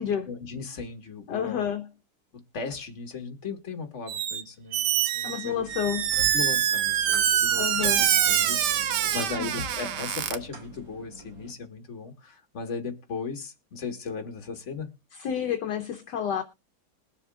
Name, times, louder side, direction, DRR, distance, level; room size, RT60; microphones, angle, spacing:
voice 1, 0.3-1.7 2.5-4.8 5.1-5.6 6.3-14.9, left 4 dB, 40° left, 1.7 m, -37 dB
voice 2, 1.3-1.9 5.2-6.1 7.6-8.0 9.0-9.5 15.1-16.4, left 8 dB, 70° left, 1.2 m, -30 dB
Squeak, 4.1-4.4 4.7-10.4, right 10 dB, 70° right, 1.2 m, -25 dB
sound 1, 5.5-11.5, left 1 dB, 85° right, 2.4 m, -44 dB
21.0 x 7.0 x 2.4 m
omnidirectional pair, 2.0 m